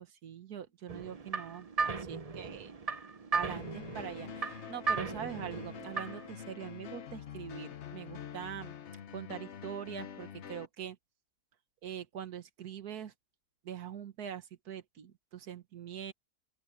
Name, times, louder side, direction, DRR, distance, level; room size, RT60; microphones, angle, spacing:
voice 1, 0.0-2.7 3.3-8.7 9.1-11.0 11.8-13.1 13.6-16.1, right 9 dB, 80° right, 1.8 m, -43 dB
sound 1, 0.9-6.3, right 4 dB, 30° right, 0.9 m, -36 dB
sound 2, 3.5-10.7, left 8 dB, 55° left, 1.1 m, -46 dB
open air
omnidirectional pair, 1.6 m